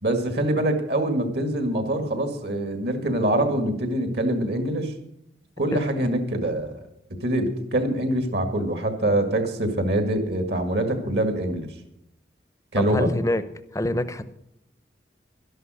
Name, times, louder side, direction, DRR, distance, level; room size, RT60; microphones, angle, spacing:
voice 1, 0.0-4.9 5.6-6.8 7.2-11.7 12.7-13.1, right 1 dB, 65° right, 6 dB, 2.0 m, -24 dB
voice 2, 12.8-13.4 13.7-14.2, left 1 dB, 15° left, 12 dB, 0.7 m, -25 dB
12.5 x 11.5 x 6.4 m, 0.78 s
head